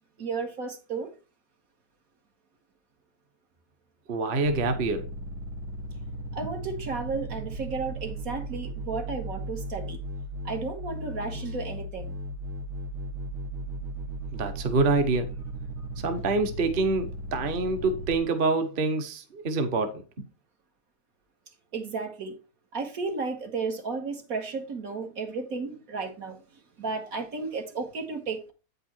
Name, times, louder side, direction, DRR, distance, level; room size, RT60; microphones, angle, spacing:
voice 1, 0.2-1.1 6.3-10.0 10.4-12.2 21.7-22.3 22.7-26.4 26.8-28.5, right 4 dB, 70° right, 1.9 m, -33 dB
voice 2, 4.1-5.1 14.3-15.3 16.0-19.9, right 3 dB, 40° right, 1.0 m, -26 dB
sound 1, 4.4-18.2, right 1 dB, 85° right, 1.5 m, -36 dB
8.6 x 5.4 x 4.3 m
omnidirectional pair, 1.6 m